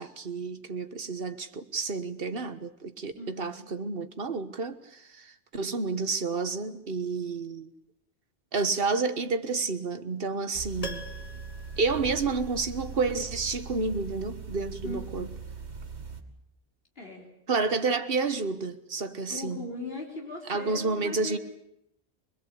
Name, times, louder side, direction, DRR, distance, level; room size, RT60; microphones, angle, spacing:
voice 1, 0.0-7.7 8.5-11.0 11.8-15.3 17.5-19.7 20.5-21.4, right 4 dB, 60° right, 1.5 m, -30 dB
voice 2, 3.2-3.7 14.8-15.3 17.0-17.3 19.3-21.4, left 2 dB, 60° left, 4.5 m, -39 dB
sound 1, 10.5-16.2, right 4 dB, 85° right, 2.6 m, -40 dB
Piano, 10.8-12.9 13.2-13.3, left 1 dB, 35° left, 1.8 m, -43 dB
24.5 x 21.5 x 8.5 m
omnidirectional pair, 1.1 m